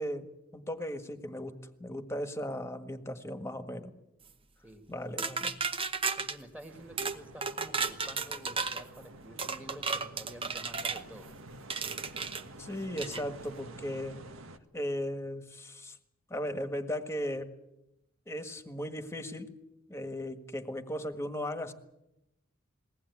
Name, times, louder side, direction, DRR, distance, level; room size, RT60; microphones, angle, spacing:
voice 1, 0.0-3.9 4.9-5.5 12.6-14.2 14.7-16.0 16.3-17.5 18.3-19.5 19.9-21.7, equal, 15° left, 8 dB, 1.6 m, -37 dB
voice 2, 4.6-5.3 6.2-11.3, equal, 5° right, 5 dB, 2.1 m, -50 dB
sound 1, 5.2-6.4 7.0-7.2 7.4-8.8 9.4-11.0 11.7-12.4 13.0-13.2, right 5 dB, 25° right, 1.0 m, -33 dB
sound 2, 6.7-14.6, right 1 dB, 80° right, 1.7 m, -50 dB
21.5 x 18.0 x 9.5 m, 0.88 s
head